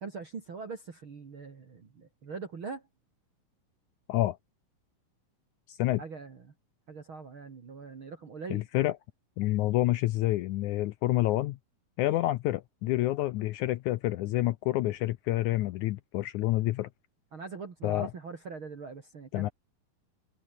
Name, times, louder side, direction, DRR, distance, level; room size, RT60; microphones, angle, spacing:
voice 1, 0.0-2.8 6.0-6.4 6.9-8.6 17.3-19.5, right 4 dB, 40° right, 2.9 m, -42 dB
voice 2, 5.7-6.0 8.5-9.0 9.4-11.6 12.0-16.9 17.8-18.1 19.3-19.5, left 16 dB, 80° left, 1.8 m, -28 dB
omnidirectional pair, 4.1 m